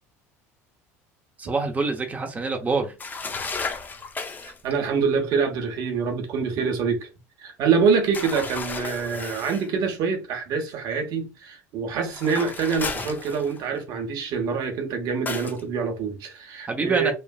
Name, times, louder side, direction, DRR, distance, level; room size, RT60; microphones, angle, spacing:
voice 1, 1.4-2.9 16.7-17.1, right 3 dB, 20° right, 0.7 m, -25 dB
sound 1, 3.0-4.6 8.1-9.7 12.0-13.8 15.3-15.6, left 4 dB, 20° left, 0.5 m, -33 dB
voice 2, 4.6-7.1 7.4-17.1, right 5 dB, 55° right, 0.9 m, -25 dB
3.1 x 2.4 x 2.3 m
hypercardioid pair, 70°, 8 cm